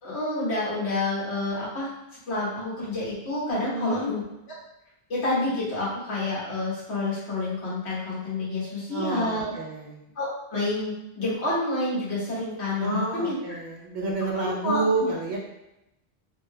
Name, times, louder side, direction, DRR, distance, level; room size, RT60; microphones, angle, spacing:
voice 1, 0.0-1.9 2.3-4.2 5.1-9.5 10.1-13.4 14.4-15.1, left 2 dB, 90° left, -8 dB, 1.6 m, -28 dB
voice 2, 3.7-4.1 8.9-10.0 12.8-15.4, right 2 dB, 50° right, -2 dB, 0.7 m, -29 dB
3.7 x 3.2 x 2.2 m, 0.90 s
omnidirectional pair, 1.1 m